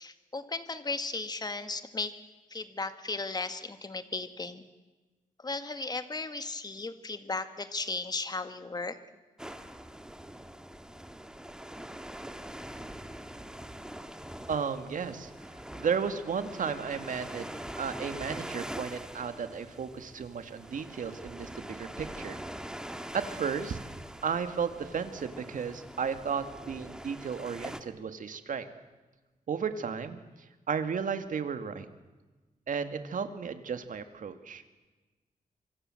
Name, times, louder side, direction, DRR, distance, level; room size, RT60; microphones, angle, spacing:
voice 1, 0.0-2.1 2.5-4.6 5.4-9.0, left 3 dB, 30° left, 10 dB, 1.9 m, -36 dB
sound 1, 9.4-27.8, right 1 dB, 5° right, 1.7 m, -43 dB
voice 2, 14.5-15.3 15.7-17.5 17.8-22.4 23.1-23.8 24.2-28.7 29.5-30.2 30.7-31.9 32.7-34.6, right 6 dB, 70° right, 9 dB, 2.1 m, -34 dB
26.0 x 25.0 x 7.8 m, 1.2 s
wide cardioid pair, 115°, 14 cm